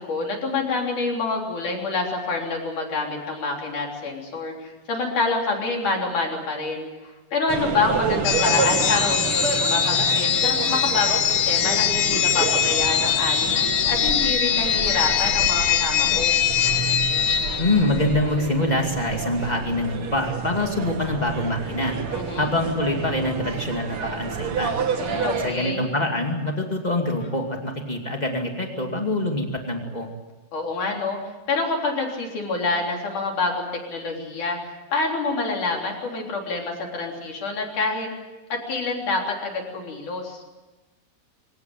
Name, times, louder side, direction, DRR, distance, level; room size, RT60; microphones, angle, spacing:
voice 1, 0.0-16.4 22.1-22.5 25.0-25.9 30.5-31.2 31.5-38.1 38.5-40.4, left 3 dB, 45° left, 1 dB, 4.7 m, -27 dB
sound 1, 7.5-25.5, right 6 dB, 90° right, 1.2 m, -30 dB
sound 2, 8.3-18.1, left 9 dB, 85° left, 3.8 m, -22 dB
voice 2, 17.6-21.9 22.3-24.7 25.4-30.1, left 1 dB, 70° left, 2 dB, 0.4 m, -25 dB
25.0 x 17.5 x 9.2 m, 1.1 s
omnidirectional pair, 5.3 m